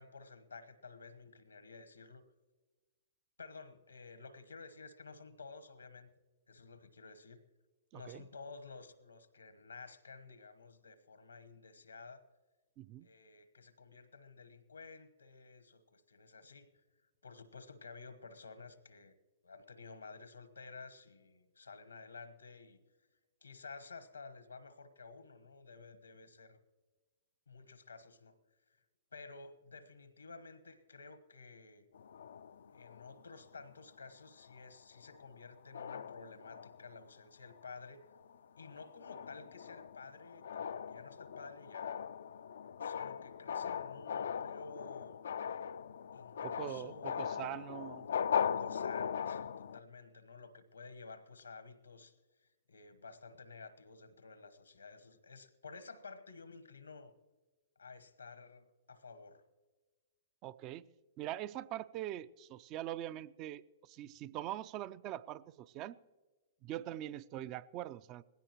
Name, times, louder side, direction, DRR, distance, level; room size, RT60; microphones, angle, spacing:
voice 1, 0.0-2.2 3.4-6.1 6.5-7.4 7.9-12.2 13.0-16.7 17.2-19.2 19.4-22.8 23.4-26.6 27.5-28.4 28.7-28.8 29.1-31.9 32.7-38.1 38.6-41.9 42.8-45.2 46.1-47.6 48.4-57.1 57.8-59.4, left 4 dB, 90° left, 12 dB, 1.2 m, -53 dB
voice 2, 7.9-8.2 12.8-13.1 46.4-48.1 60.4-60.8 61.2-66.0 66.6-68.2, right 13 dB, 40° right, 17 dB, 0.4 m, -43 dB
sound 1, 31.9-33.8 34.4-34.7 35.0-35.4 35.7-37.0 37.5-37.8 38.2-49.8, left 7 dB, 75° left, 0.4 m, -40 dB
19.5 x 16.5 x 3.0 m, 1.2 s
hypercardioid pair, 115°, 0 cm